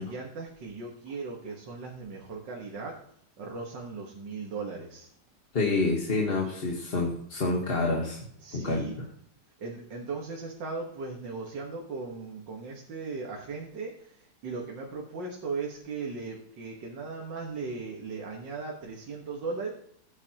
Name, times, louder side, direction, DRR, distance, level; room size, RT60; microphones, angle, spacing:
voice 1, 0.0-3.0 3.4-5.1 8.4-9.0 9.6-19.7, right 4 dB, 85° right, -1 dB, 2.1 m, -37 dB
voice 2, 5.5-8.2 8.5-8.9, left 3 dB, 35° left, -1 dB, 1.4 m, -27 dB
16.5 x 9.6 x 2.9 m, 0.67 s
omnidirectional pair, 1.9 m